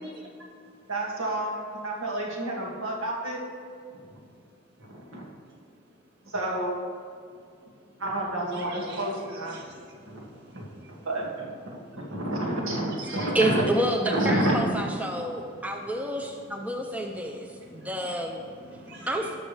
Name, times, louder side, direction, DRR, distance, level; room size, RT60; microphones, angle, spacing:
voice 1, 0.9-3.4 4.9-5.2 6.3-6.7 8.0-9.6 10.1-10.3 10.5-10.6 11.1-11.5 12.0-13.6 14.0-14.6, right 1 dB, 80° right, -3 dB, 2.2 m, -29 dB
voice 2, 8.5-9.1 9.5-11.0 11.7-12.2 13.0-13.3 16.6-16.7 17.5-18.1 18.6-19.4, equal, 60° right, -1 dB, 1.8 m, -45 dB
voice 3, 13.3-18.4 19.1-19.4, right 1 dB, 5° right, 2 dB, 0.6 m, -29 dB
18.5 x 6.3 x 3.4 m, 2.3 s
head